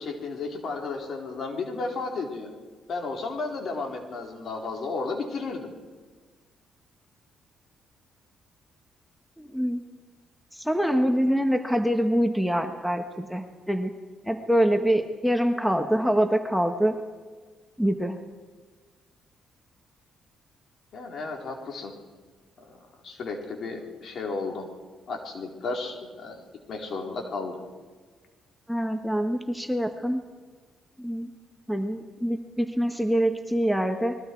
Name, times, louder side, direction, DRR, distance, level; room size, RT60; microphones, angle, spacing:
voice 1, 0.0-2.5 2.9-5.7 20.9-21.9 23.0-24.7 25.1-26.4 26.7-27.6, left 3 dB, 60° left, 1 dB, 4.2 m, -33 dB
voice 2, 9.4-9.8 10.5-13.9 14.2-17.0 17.8-18.2 28.7-30.2 31.0-31.3 31.7-34.2, equal, ahead, 6 dB, 1.4 m, -25 dB
29.0 x 21.5 x 4.7 m, 1.5 s
cardioid pair, 90°, 0 cm